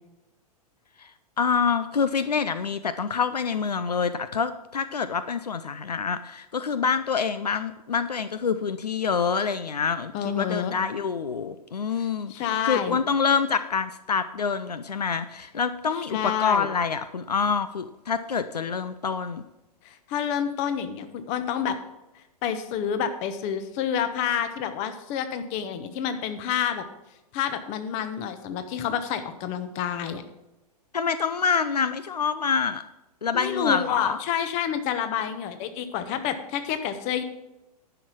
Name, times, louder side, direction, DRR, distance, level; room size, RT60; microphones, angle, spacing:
voice 1, 1.4-19.4 30.9-32.8 33.2-34.2, left 6 dB, 80° left, 13 dB, 0.5 m, -26 dB
voice 2, 10.1-10.7 12.0-13.0 16.0-16.7 19.8-21.8 22.4-26.8 27.3-30.2 33.3-37.2, left 8 dB, 35° left, 10 dB, 1.1 m, -28 dB
11.0 x 5.7 x 6.1 m, 0.97 s
figure-of-eight pair, 105°, 20 cm